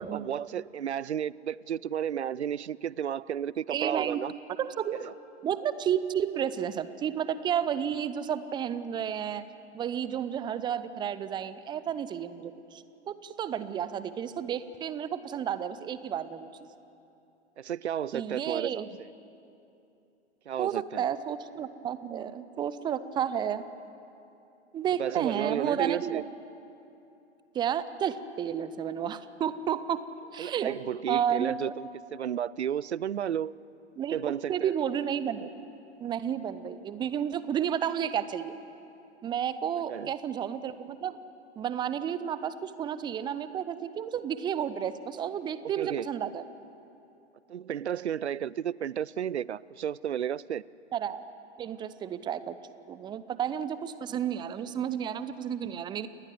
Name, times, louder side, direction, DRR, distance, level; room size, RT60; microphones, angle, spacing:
voice 1, 0.1-4.3 17.6-19.1 20.5-21.0 25.0-26.2 30.4-33.6 34.1-34.7 39.9-40.1 45.8-46.1 47.5-50.6, right 9 dB, 70° right, 22 dB, 0.6 m, -32 dB
voice 2, 3.7-4.2 4.6-5.1 5.4-9.4 9.7-16.5 18.1-18.9 20.6-23.7 24.7-26.2 27.5-30.0 30.3-30.7 31.1-31.6 34.0-35.7 36.0-38.6 39.2-41.2 41.6-46.4 50.9-51.2 51.6-52.6 52.9-56.1, right 9 dB, 15° right, 14 dB, 0.7 m, -31 dB
29.0 x 20.0 x 7.7 m, 2.8 s
figure-of-eight pair, 105°, 35 cm